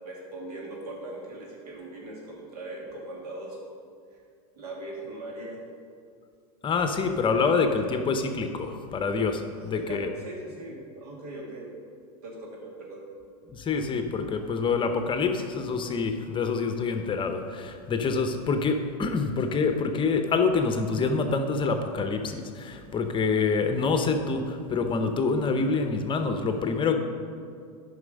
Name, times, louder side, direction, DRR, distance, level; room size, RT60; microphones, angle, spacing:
voice 1, 0.0-3.6 4.6-5.6 7.0-7.2 7.8-7.9 9.6-11.7 12.2-13.1, right 2 dB, 80° right, -1 dB, 2.3 m, -40 dB
voice 2, 6.6-10.1 13.5-27.0, left 4 dB, 25° left, 6 dB, 0.8 m, -26 dB
9.6 x 5.7 x 5.3 m, 2.3 s
hypercardioid pair, 105°, 20 cm